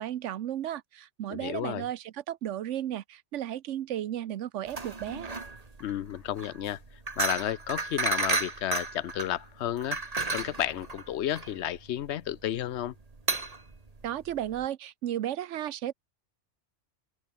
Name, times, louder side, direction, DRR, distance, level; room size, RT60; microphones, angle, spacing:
voice 1, 0.0-5.3 14.0-15.9, right 11 dB, 90° right, 1.0 m, -34 dB
voice 2, 1.3-1.8 5.8-6.8 7.2-10.0 10.3-12.9, left 12 dB, 70° left, 0.9 m, -32 dB
sound 1, 4.7-14.7, right 3 dB, 30° right, 1.8 m, -33 dB
open air
omnidirectional pair, 1.2 m